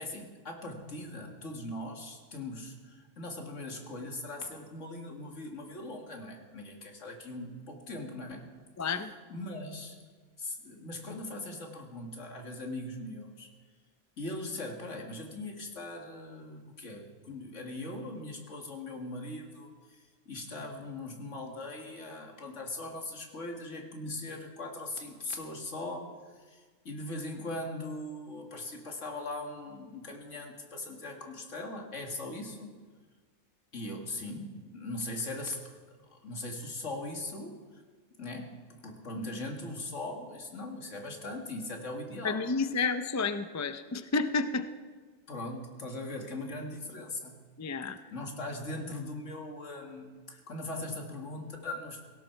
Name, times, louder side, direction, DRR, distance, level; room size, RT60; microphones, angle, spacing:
voice 1, 0.0-8.4 9.3-10.0 10.4-13.5 14.2-32.7 33.7-35.7 36.1-37.8 38.2-42.4 45.3-47.4 48.1-52.0, left 2 dB, 70° left, 2 dB, 2.4 m, -40 dB
voice 2, 8.8-9.1 42.2-44.7 47.6-48.0, left 4 dB, 25° left, 10 dB, 0.4 m, -30 dB
17.5 x 17.0 x 4.6 m, 1.5 s
omnidirectional pair, 1.3 m